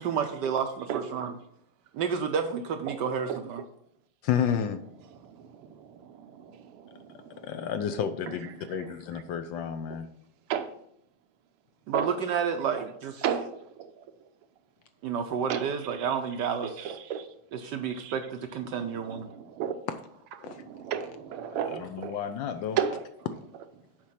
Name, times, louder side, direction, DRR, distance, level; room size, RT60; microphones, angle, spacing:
voice 1, 0.0-1.4 1.9-3.6 11.9-13.2 15.0-17.0 17.5-19.3, right 7 dB, 75° right, 7 dB, 1.0 m, -30 dB
voice 2, 4.2-4.8 7.5-10.1 20.4-20.6 21.5-22.8, left 8 dB, 75° left, 9 dB, 1.1 m, -31 dB
voice 3, 5.7-6.9 10.5-10.7 11.9-12.1 13.2-13.5 15.5-15.7 16.6-17.3 18.0-18.1 19.3-19.7 20.5-22.1 22.7-23.0, right 9 dB, 90° right, 8 dB, 1.7 m, -32 dB
7.4 x 5.1 x 5.7 m, 0.71 s
omnidirectional pair, 2.4 m